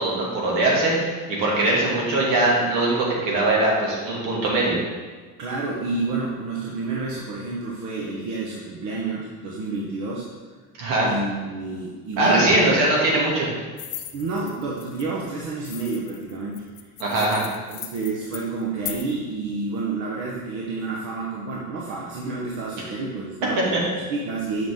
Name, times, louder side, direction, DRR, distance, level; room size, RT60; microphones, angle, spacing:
voice 1, 0.0-4.8 10.8-11.1 12.2-13.5 17.0-17.4, right 2 dB, 80° right, -4 dB, 2.5 m, -21 dB
voice 2, 5.4-10.3 11.0-12.9 14.1-16.6 17.9-24.7, right 3 dB, 60° right, -3 dB, 1.1 m, -29 dB
sound 1, 13.8-15.1 15.6-19.1, left 11 dB, 45° left, 0.6 m, -37 dB
7.8 x 6.0 x 3.7 m, 1.4 s
cardioid pair, 165°, 33 cm